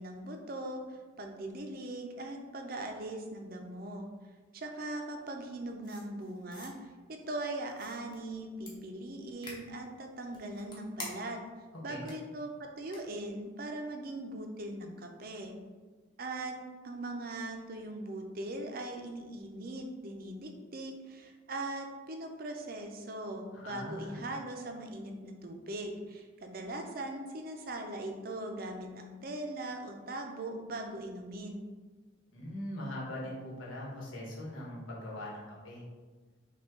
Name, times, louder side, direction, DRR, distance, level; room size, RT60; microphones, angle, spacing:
voice 1, 0.0-4.1 4.5-6.9 7.3-11.4 11.8-15.5 16.2-16.5 16.8-31.7, right 1 dB, 45° right, 3 dB, 0.5 m, -40 dB
sound 1, 5.8-6.7 7.7-8.2 8.7-8.8 9.4-9.6 10.3-11.4 12.1-12.2 12.9-13.0, left 2 dB, 25° left, 0.8 m, -46 dB
voice 2, 23.5-24.2 32.3-35.8, left 1 dB, 90° left, -4 dB, 1.4 m, -41 dB
5.9 x 2.4 x 3.7 m, 1.4 s
head